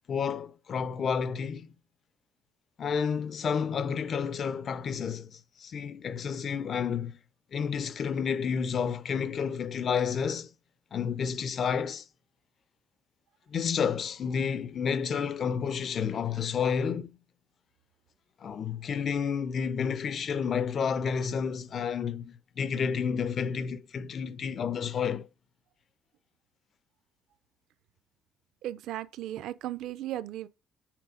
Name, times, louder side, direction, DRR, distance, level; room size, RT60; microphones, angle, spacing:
voice 1, 0.1-1.7 2.8-7.2 7.5-10.5 10.9-12.0 13.5-17.1 18.4-25.3, left 6 dB, 40° left, 0.5 m, -30 dB
voice 2, 28.6-30.5, right 13 dB, 70° right, 0.5 m, -36 dB
5.9 x 4.0 x 4.9 m
cardioid pair, 140°, 0 cm